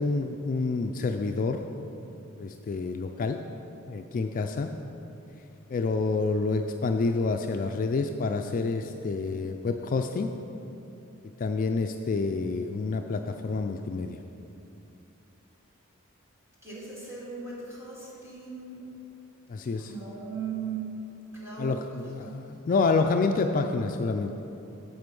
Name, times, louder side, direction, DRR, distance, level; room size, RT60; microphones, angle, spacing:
voice 1, 0.0-1.9 2.4-3.4 3.9-4.7 5.7-10.3 11.4-14.2 19.5-19.9 21.6-24.3, left 3 dB, 40° left, 5 dB, 0.3 m, -28 dB
voice 2, 16.6-18.9 19.8-22.4, right 5 dB, 15° right, -7 dB, 2.3 m, -38 dB
7.9 x 7.5 x 5.3 m, 3.0 s
head